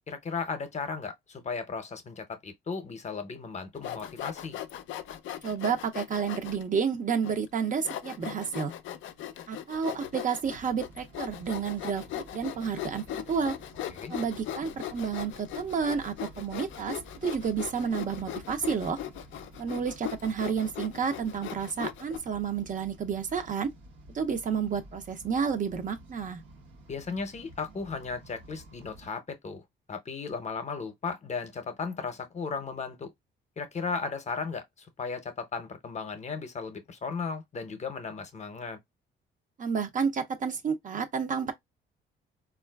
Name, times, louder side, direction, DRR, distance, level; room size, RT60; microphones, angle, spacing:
voice 1, 0.1-4.6 13.9-14.1 26.9-29.6 29.9-33.1 33.6-38.8, left 5 dB, 35° left, 0.6 m, -36 dB
Sawing, 3.8-6.6 7.2-7.3 7.8-22.2, left 11 dB, 75° left, 0.4 m, -39 dB
voice 2, 5.4-8.7 9.5-13.6 14.1-19.0 19.6-23.7 24.1-26.4 39.6-41.5, right 6 dB, 40° right, 0.5 m, -30 dB
sound 1, 10.4-29.1, right 1 dB, 80° right, 0.9 m, -52 dB
3.7 x 2.3 x 2.2 m
cardioid pair, 90°, 20 cm